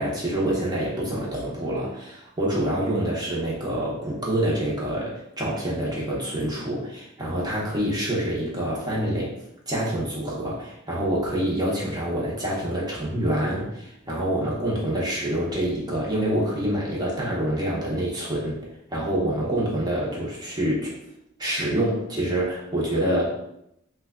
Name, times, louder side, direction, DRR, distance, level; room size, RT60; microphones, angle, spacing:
voice 1, 0.0-9.3 9.7-18.6 18.9-20.9 21.4-23.3, right 1 dB, 20° right, -5 dB, 0.8 m, -26 dB
3.3 x 2.2 x 3.5 m, 0.79 s
head